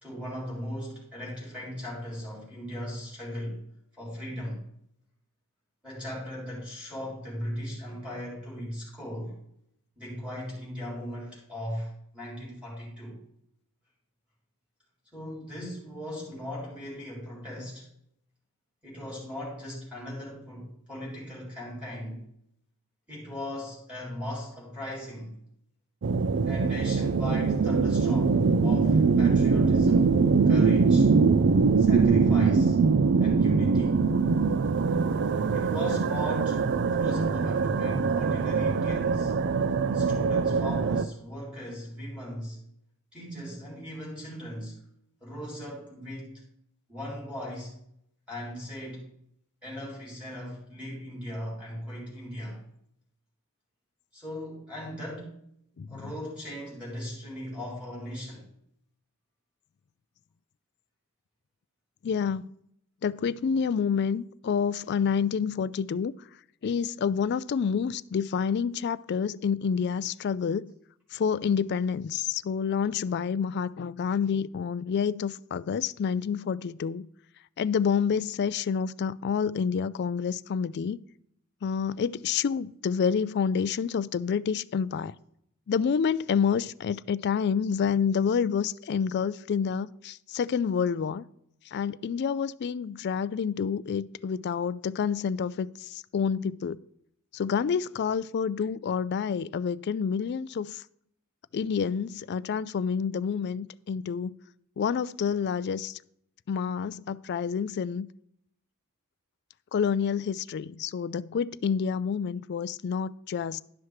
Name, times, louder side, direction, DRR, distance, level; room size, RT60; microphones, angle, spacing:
voice 1, 0.0-3.6 4.0-4.6 5.8-9.4 10.0-13.2 15.1-17.9 18.8-22.2 23.1-25.4 26.4-30.1 30.5-31.1 31.8-32.8 33.2-34.0 35.5-39.3 39.9-42.6 43.1-44.8 45.2-46.4 46.9-47.8 48.3-49.1 49.6-52.6 54.1-55.4 55.9-58.5, left 1 dB, 5° right, 3.7 m, -38 dB
sound 1, 26.0-41.0, right 4 dB, 55° right, 0.4 m, -23 dB
voice 2, 62.0-62.5 63.0-66.1 66.6-70.7 71.1-77.1 77.6-81.0 81.6-85.1 85.7-91.2 91.7-96.8 97.3-100.8 101.5-104.3 104.8-105.9 106.5-108.1 109.7-113.6, left 6 dB, 50° left, 0.3 m, -28 dB
11.5 x 5.8 x 4.8 m
head